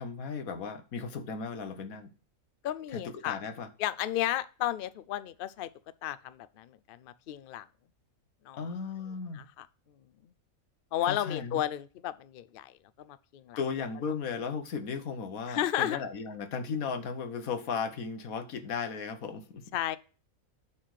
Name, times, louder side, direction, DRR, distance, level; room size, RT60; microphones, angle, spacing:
voice 1, 0.0-2.1 2.9-3.7 8.5-9.4 11.1-11.6 13.6-19.6, left 5 dB, 80° left, 1.5 m, -36 dB
voice 2, 2.6-3.4 3.8-5.7 6.0-7.7 8.5-8.7 9.3-9.7 10.9-13.6 15.5-16.0 19.7-20.0, left 12 dB, 65° left, 0.5 m, -33 dB
9.7 x 4.3 x 6.4 m
omnidirectional pair, 1.5 m